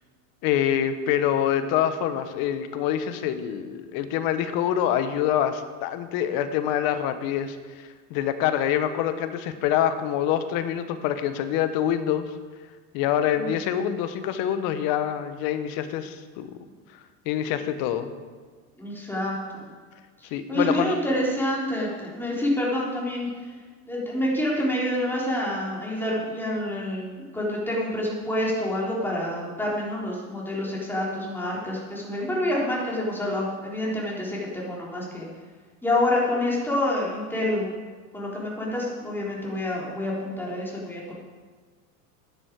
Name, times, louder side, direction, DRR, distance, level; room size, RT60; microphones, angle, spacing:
voice 1, 0.4-12.2 12.9-16.5 17.2-18.1 20.3-21.0, left 10 dB, 50° left, 10 dB, 1.3 m, -26 dB
voice 2, 18.8-19.7 20.2-23.3 23.9-35.3 35.8-37.7 38.1-41.1, left 1 dB, 5° left, -5 dB, 3.9 m, -27 dB
12.5 x 10.5 x 4.8 m, 1.5 s
hypercardioid pair, 110°, 46 cm